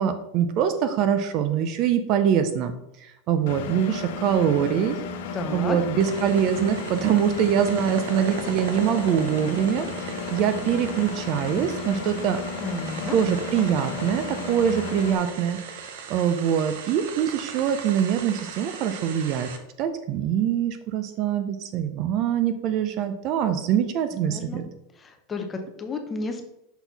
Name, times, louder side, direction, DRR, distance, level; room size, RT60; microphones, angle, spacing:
voice 1, 0.0-2.7 3.0-5.0 5.5-12.4 13.1-15.6 16.1-19.5 19.8-24.6, right 9 dB, 35° right, 9 dB, 0.4 m, -24 dB
Engine, 3.5-15.2, left 5 dB, 65° left, 0.7 m, -34 dB
voice 2, 5.3-5.8 12.6-13.2 24.1-24.6 25.0-26.5, left 3 dB, 15° left, 5 dB, 0.6 m, -32 dB
sound 1, 6.0-19.6, right 6 dB, 65° right, 0.8 m, -37 dB
6.0 x 4.0 x 4.0 m, 0.84 s
supercardioid pair, 175°, 0 cm